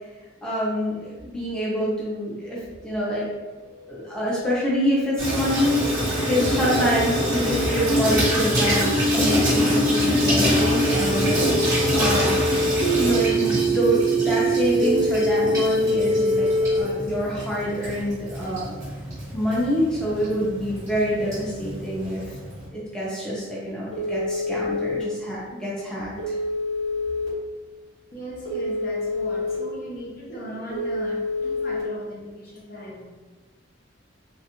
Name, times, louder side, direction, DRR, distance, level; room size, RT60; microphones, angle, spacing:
voice 1, 0.4-2.6 2.8-3.2 3.9-12.4 13.0-18.8 19.3-22.3 22.7-26.3, equal, 5° left, -8 dB, 0.6 m, -26 dB
sound 1, 3.6-16.8, equal, 35° right, 0.3 m, -25 dB
Water tap faucet / Sink (filling or washing), 5.2-22.7, right 1 dB, 15° right, 1.2 m, -26 dB
Telephone, 23.9-25.0 26.2-27.3 28.5-29.6 30.7-31.8, left 2 dB, 85° left, 1.3 m, -27 dB
voice 2, 28.1-33.0, equal, 50° left, -4 dB, 0.8 m, -38 dB
3.2 x 2.4 x 2.9 m, 1.3 s
head